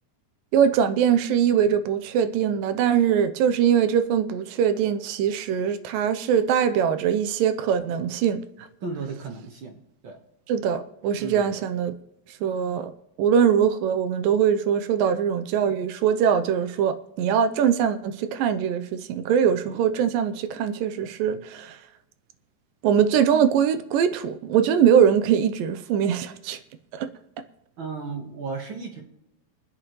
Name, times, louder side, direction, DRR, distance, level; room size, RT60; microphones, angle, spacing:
voice 1, 0.5-8.4 10.5-11.9 12.4-12.9 13.2-21.8 22.8-26.6 26.9-27.1, right 8 dB, 80° right, 2.4 m, -22 dB
voice 2, 8.8-9.8 10.0-10.2 11.2-11.5 27.8-29.0, right 4 dB, 50° right, 1.7 m, -34 dB
27.0 x 9.8 x 3.1 m
omnidirectional pair, 4.1 m